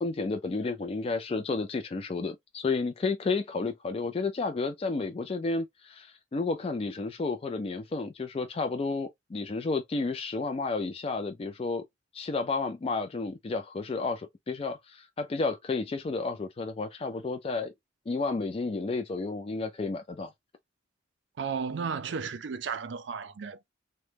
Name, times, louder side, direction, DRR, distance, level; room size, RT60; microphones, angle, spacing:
voice 1, 0.0-11.8 12.1-17.7 18.1-20.3, left 3 dB, 30° left, 0.3 m, -31 dB
voice 2, 21.4-23.7, right 6 dB, 65° right, 0.4 m, -34 dB
3.0 x 2.1 x 3.3 m
head